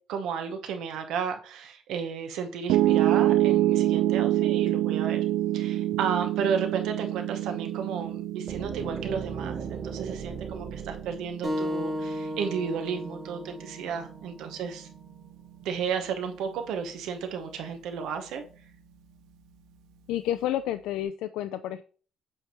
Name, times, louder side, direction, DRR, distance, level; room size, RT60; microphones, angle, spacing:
voice 1, 0.1-5.2 5.5-14.9 15.6-18.4, right 6 dB, 65° right, 6 dB, 1.0 m, -33 dB
Piano, 2.7-14.9, right 14 dB, 85° right, 0.3 m, -27 dB
sound 1, 8.5-12.4, right 5 dB, 25° right, 0.5 m, -39 dB
sound 2, 11.4-16.6, equal, 5° right, 1.3 m, -36 dB
voice 2, 20.1-21.8, left 12 dB, 75° left, 10 dB, 0.3 m, -30 dB
7.7 x 3.4 x 4.4 m, 0.40 s
cardioid pair, 175°, 0 cm